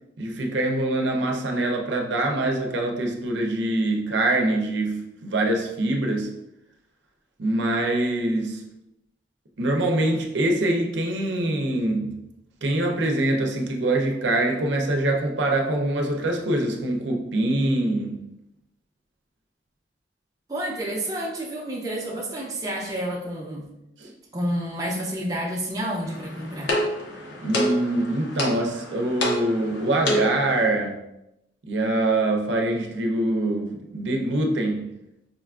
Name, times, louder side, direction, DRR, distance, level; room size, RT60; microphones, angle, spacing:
voice 1, 0.2-6.3 7.4-8.6 9.6-12.2 12.6-18.2 24.0-24.1 27.4-31.0 31.7-34.9, right 1 dB, 80° right, 0.6 m, -24 dB
voice 2, 20.5-23.7 24.3-26.7, right 1 dB, 20° right, 0.5 m, -29 dB
sound 1, 26.0-30.6, left 1 dB, 85° left, 0.7 m, -28 dB
5.0 x 2.4 x 2.4 m
head